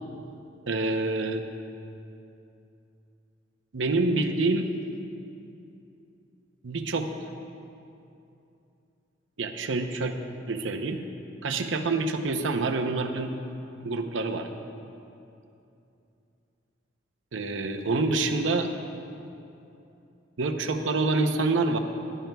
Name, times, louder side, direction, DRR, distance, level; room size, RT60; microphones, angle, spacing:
voice 1, 0.7-1.4 3.7-4.7 6.6-7.3 9.4-10.1 10.5-11.0 11.4-13.3 13.8-14.5 17.3-18.7 20.4-21.8, right 3 dB, 75° right, 5 dB, 0.7 m, -27 dB
19.0 x 12.0 x 2.3 m, 2.7 s
head